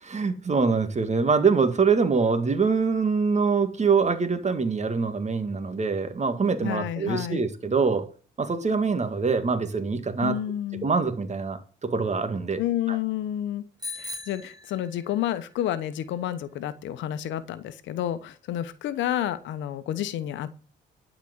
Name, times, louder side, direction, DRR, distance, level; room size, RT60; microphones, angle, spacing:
voice 1, 0.0-8.1 8.4-10.4 10.8-12.6 12.9-13.0, right 5 dB, 35° right, 2.0 m, -24 dB
voice 2, 6.6-7.4 10.2-10.9 12.6-13.6 14.0-20.5, left 11 dB, 75° left, 1.0 m, -30 dB
Bicycle bell, 13.8-15.4, left 3 dB, 20° right, 3.3 m, -39 dB
12.0 x 5.1 x 8.1 m
supercardioid pair, 60°, 19 cm